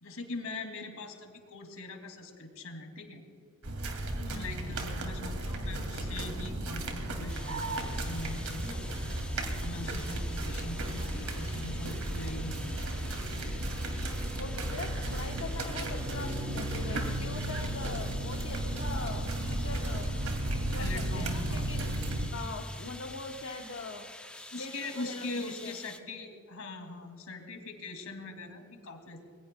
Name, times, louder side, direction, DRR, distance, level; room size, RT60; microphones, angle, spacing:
voice 1, 0.0-3.2 4.0-8.8 9.6-13.1 15.7-16.1 20.8-21.7 24.5-29.2, left 2 dB, 80° left, 4 dB, 2.6 m, -42 dB
sound 1, 3.6-22.3, right 1 dB, 75° right, 2.5 m, -34 dB
voice 2, 4.2-4.5 14.4-20.1 20.7-21.9 22.3-24.1 24.6-25.8, left 3 dB, 60° left, 0 dB, 1.1 m, -42 dB
sound 2, 7.3-26.0, left 1 dB, 5° left, 0.8 m, -48 dB
26.5 x 21.5 x 2.3 m, 2.5 s
head